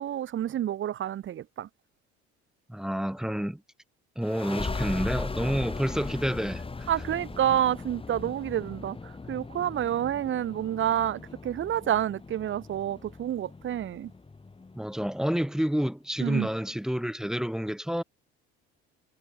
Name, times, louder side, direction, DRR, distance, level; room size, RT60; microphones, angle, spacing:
voice 1, 0.0-1.7 6.9-14.1 16.2-16.5, right 11 dB, 45° right, 0.7 m, -29 dB
voice 2, 2.7-3.6 4.2-6.9 14.8-18.0, equal, ahead, 0.3 m, -29 dB
sound 1, 4.2-15.5, left 3 dB, 20° left, 2.1 m, -38 dB
supercardioid pair, 75°, 29 cm